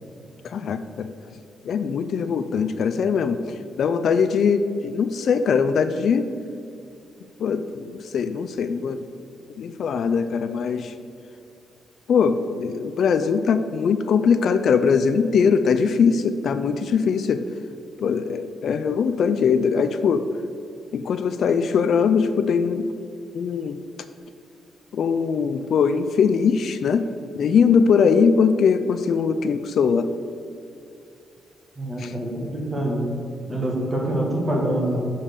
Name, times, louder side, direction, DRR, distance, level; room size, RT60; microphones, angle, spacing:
voice 1, 0.4-1.1 1.6-6.3 7.4-9.1 9.6-10.9 12.1-17.5 18.0-20.3 20.9-22.9 23.3-23.8 24.9-27.1 27.4-30.1 32.0-32.1, left 6 dB, 60° left, 10 dB, 0.4 m, -21 dB
voice 2, 31.8-33.1 33.4-35.0, right 1 dB, 25° right, -2 dB, 1.9 m, -25 dB
7.1 x 5.4 x 6.5 m, 2.6 s
cardioid pair, 140°, 0 cm